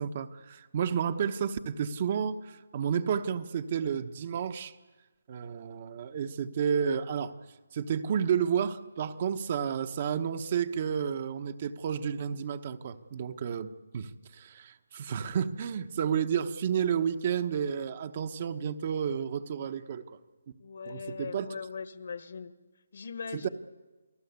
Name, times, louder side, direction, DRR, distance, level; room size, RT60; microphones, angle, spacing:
voice 1, 0.0-4.8 5.3-7.3 7.7-13.7 13.9-20.2 20.9-21.5 23.3-23.5, right 7 dB, 35° right, 10 dB, 1.0 m, -31 dB
voice 2, 20.6-22.5 22.9-23.5, left 5 dB, 55° left, 13 dB, 1.5 m, -40 dB
29.0 x 19.0 x 8.2 m, 1.2 s
hypercardioid pair, 170°, 0 cm